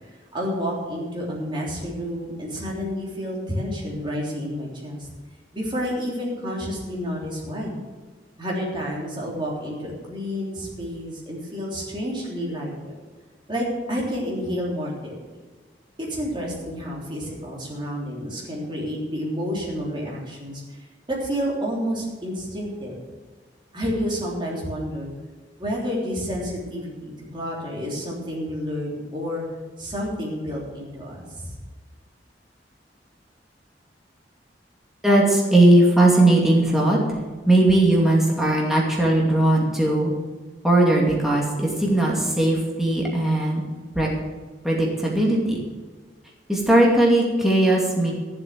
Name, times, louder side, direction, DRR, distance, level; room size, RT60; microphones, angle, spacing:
voice 1, 0.0-5.1 5.5-7.8 8.4-12.9 13.5-15.2 16.0-22.9 23.7-25.1 25.6-29.4 29.8-31.5, equal, 30° right, -3 dB, 3.4 m, -30 dB
voice 2, 35.0-37.0 37.5-40.1 40.6-43.6 43.9-44.1 44.6-45.6 46.5-48.1, right 1 dB, ahead, -4 dB, 2.5 m, -18 dB
13.0 x 7.7 x 7.5 m, 1.4 s
head